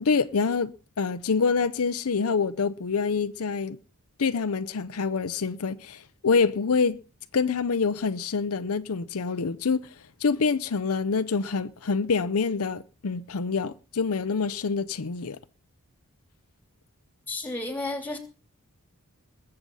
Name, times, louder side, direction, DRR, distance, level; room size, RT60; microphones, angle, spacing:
voice 1, 0.0-3.8 4.2-7.0 7.3-9.9 10.2-15.4, left 5 dB, 70° left, 0.6 m, -26 dB
voice 2, 17.3-18.2, left 2 dB, 10° left, 3.1 m, -32 dB
21.0 x 7.8 x 5.4 m
head